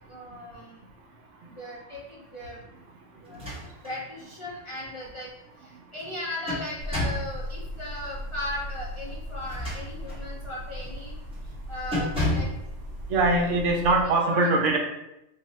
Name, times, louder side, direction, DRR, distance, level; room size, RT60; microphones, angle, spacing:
voice 1, 0.1-0.8 1.4-2.6 3.1-5.3 5.6-11.2 11.4-12.5 13.1-13.5 13.9-14.5, left 1 dB, 40° left, -7 dB, 0.5 m, -38 dB
sound 1, 3.3-4.0 4.4-4.5 6.0-7.3 9.4-10.3 10.8-11.0 11.3-11.5 11.9-12.6, left 1 dB, 5° right, 1.1 m, -31 dB
sound 2, 6.8-14.0, equal, 70° left, 0.9 m, -38 dB
voice 2, 13.1-14.8, right 2 dB, 80° right, 2 dB, 1.0 m, -22 dB
2.7 x 2.4 x 4.0 m, 0.89 s
omnidirectional pair, 1.2 m